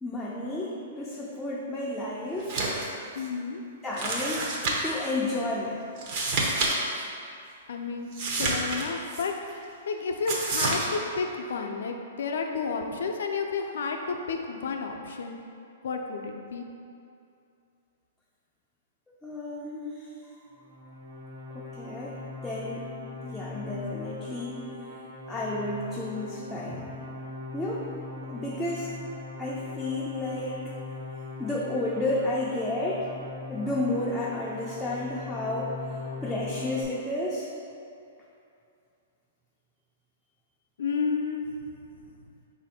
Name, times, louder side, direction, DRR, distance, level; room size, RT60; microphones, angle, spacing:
voice 1, 0.0-2.6 3.8-4.5 4.8-5.9 19.2-20.1 20.4-20.5 21.5-22.9 23.2-24.6 25.3-27.0 27.5-27.9 28.3-28.9 29.4-30.7 31.4-33.1 33.5-35.7 36.2-37.5, left 2 dB, 5° left, -7 dB, 0.3 m, -32 dB
sound 1, 2.4-2.9 3.2-3.3 4.0-5.0 6.0-6.7 7.0-7.1 8.1-9.2 10.3-10.9, right 2 dB, 40° right, 0.6 m, -28 dB
voice 2, 3.1-3.6 7.7-8.1 8.4-9.3 9.9-15.4 15.8-16.6 40.8-41.6, left 5 dB, 75° left, 3 dB, 0.4 m, -31 dB
sound 2, 20.6-36.8, left 3 dB, 85° right, 1.0 m, -40 dB
4.1 x 2.5 x 4.1 m, 2.6 s
hypercardioid pair, 155°, 0 cm